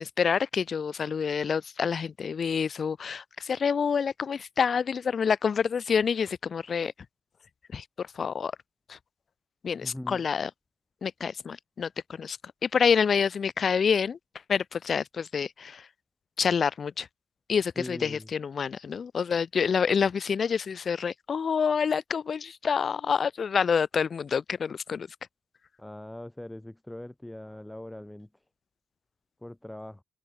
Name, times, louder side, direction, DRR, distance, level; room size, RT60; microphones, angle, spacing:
voice 1, 0.0-6.9 7.7-8.5 8.9-9.0 9.6-10.5 11.0-12.4 12.6-14.2 14.5-15.9 16.4-17.1 17.5-25.1, left 6 dB, 50° left, 0.5 m, -27 dB
voice 2, 9.8-10.2 17.8-18.3 25.8-28.3 29.4-30.0, left 1 dB, 10° left, 5.1 m, -41 dB
hypercardioid pair, 50°, 0 cm